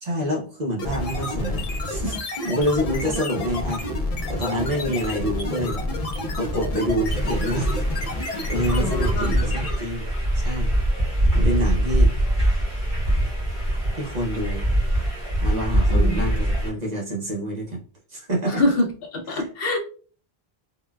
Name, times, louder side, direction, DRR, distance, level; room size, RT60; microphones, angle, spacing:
voice 1, 0.0-3.9 4.3-5.8 6.4-7.8 8.5-10.1 10.3-10.7 11.3-12.1 14.0-14.7 15.4-17.8 18.1-18.6 19.3-19.5, equal, 45° right, -2 dB, 0.7 m, -27 dB
sound 1, 0.8-10.0, left 1 dB, 45° left, 0.5 m, -29 dB
sound 2, 7.1-16.7, right 1 dB, 25° right, 1.3 m, -23 dB
voice 2, 8.7-9.3 15.9-16.2 18.5-19.8, left 1 dB, 70° left, 3 dB, 0.9 m, -25 dB
3.7 x 2.2 x 2.2 m, 0.40 s
omnidirectional pair, 1.1 m